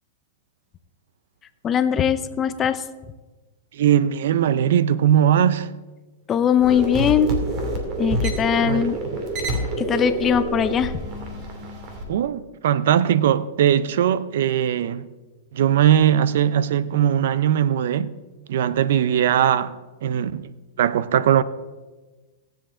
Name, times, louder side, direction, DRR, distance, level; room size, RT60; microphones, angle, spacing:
voice 1, 1.6-2.8 6.3-7.4 8.0-9.0 9.8-11.0, left 8 dB, 25° left, 0.6 m, -20 dB
voice 2, 3.7-5.7 8.6-8.9 12.1-15.1 15.5-18.2 18.5-19.8 20.0-20.5 20.8-21.4, right 10 dB, 70° right, 0.5 m, -20 dB
sound 1, 6.6-12.0, right 1 dB, 40° right, 2.4 m, -27 dB
17.5 x 7.8 x 3.7 m
hypercardioid pair, 135°, 0 cm